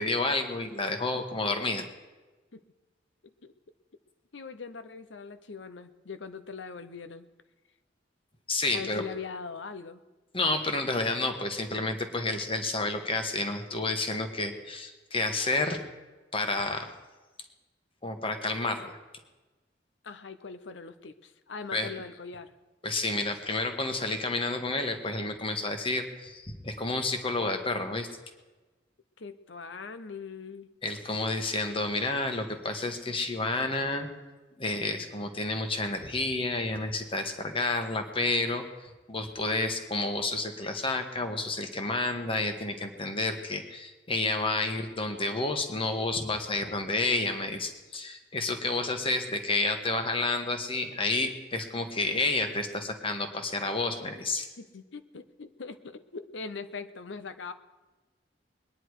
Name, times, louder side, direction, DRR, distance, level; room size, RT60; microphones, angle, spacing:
voice 1, 0.0-1.8 8.5-9.0 10.3-15.8 16.3-16.9 18.0-18.9 21.7-21.9 22.8-28.1 30.8-34.1 34.6-38.6 39.1-54.5, left 2 dB, 30° left, 6 dB, 1.4 m, -30 dB
voice 2, 3.2-3.5 4.3-7.3 8.7-10.0 20.0-22.5 29.2-30.7 54.6-57.5, left 5 dB, 75° left, 11 dB, 0.8 m, -41 dB
22.0 x 10.0 x 4.8 m, 1.2 s
head